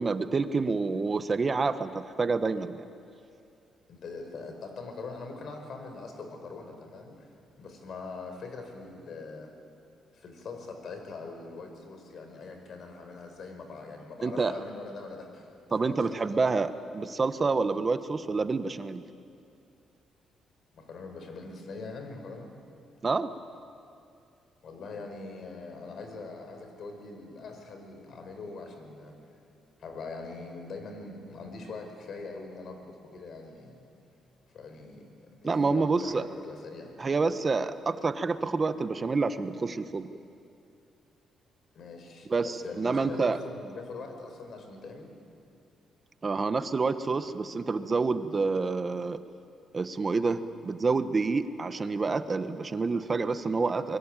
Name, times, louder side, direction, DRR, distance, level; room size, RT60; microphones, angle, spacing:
voice 1, 0.0-2.8 14.2-14.5 15.7-19.0 23.0-23.3 35.4-36.3 37.0-40.1 42.3-43.4 46.2-49.2 49.7-54.0, right 4 dB, 35° right, 11 dB, 1.3 m, -28 dB
voice 2, 3.9-7.3 7.6-9.5 10.1-15.5 15.8-16.2 20.7-22.5 24.6-29.1 29.8-33.8 34.5-35.1 35.4-37.0 41.7-45.1, left 3 dB, 60° left, 5 dB, 5.0 m, -42 dB
24.0 x 22.0 x 9.2 m, 2.5 s
cardioid pair, 90°, 0 cm